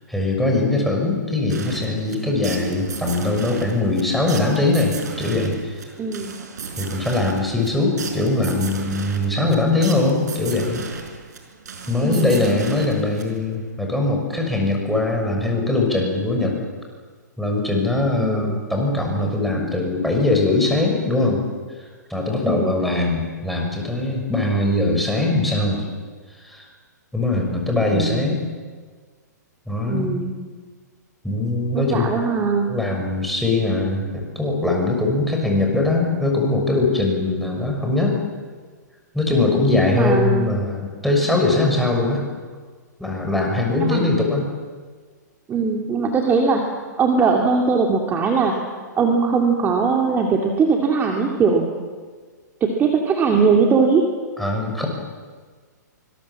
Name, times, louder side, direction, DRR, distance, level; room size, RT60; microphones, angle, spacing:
voice 1, 0.1-5.9 6.8-10.8 11.9-16.6 17.4-21.4 22.1-25.9 26.4-26.7 27.1-28.4 29.7-30.1 31.2-32.2 32.7-38.2 39.1-42.2 43.0-44.5 54.4-54.9, left 2 dB, ahead, 0 dB, 6.3 m, -21 dB
sound 1, 1.5-13.6, right 5 dB, 65° right, 5.4 m, -35 dB
voice 2, 6.0-6.4 12.0-12.4 18.2-18.6 22.4-22.8 27.9-28.4 29.9-30.4 31.7-32.7 39.7-40.5 43.8-44.2 45.5-46.6 47.0-48.6 49.0-51.7 52.6-54.1, right 5 dB, 20° right, 1 dB, 2.6 m, -20 dB
25.0 x 22.5 x 7.5 m, 1.5 s
figure-of-eight pair, 120°, 10 cm